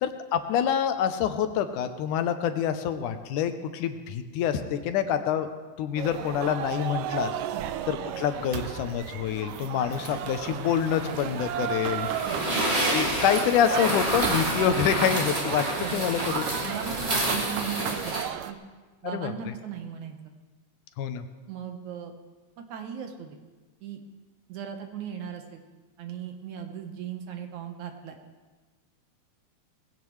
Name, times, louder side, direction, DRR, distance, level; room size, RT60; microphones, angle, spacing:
voice 1, 0.0-5.5 5.8-7.3 7.9-12.1 12.9-15.7 15.9-16.7 19.1-19.3 21.0-21.2, left 9 dB, 75° left, 9 dB, 2.2 m, -26 dB
sound 1, 6.0-18.5, right 11 dB, 85° right, 2.2 m, -34 dB
sound 2, 9.9-18.2, right 1 dB, 25° right, 1.4 m, -29 dB
voice 2, 15.8-16.1 16.7-18.2 18.5-18.6 19.0-20.2 21.5-22.1 22.6-23.4 23.8-24.0 24.5-25.6 26.0-28.2, right 8 dB, 70° right, 4 dB, 2.4 m, -37 dB
20.5 x 16.0 x 3.2 m, 1.3 s
omnidirectional pair, 3.8 m